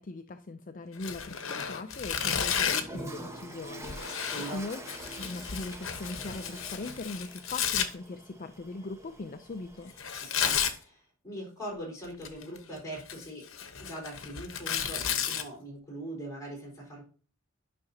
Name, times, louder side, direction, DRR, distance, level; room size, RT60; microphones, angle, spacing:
voice 1, 0.0-4.8 5.2-9.9, left 3 dB, 40° left, 8 dB, 0.5 m, -40 dB
Tearing, 1.0-3.0 3.8-7.9 10.0-10.8 12.0-12.6 13.0-15.4, left 8 dB, 65° left, 1.0 m, -32 dB
Toilet flush, 2.8-10.3, right 1 dB, 15° right, 1.1 m, -46 dB
voice 2, 4.2-4.7 10.2-13.5 13.8-17.0, right 1 dB, 15° left, -3 dB, 4.3 m, -41 dB
10.5 x 5.8 x 2.8 m, 0.40 s
head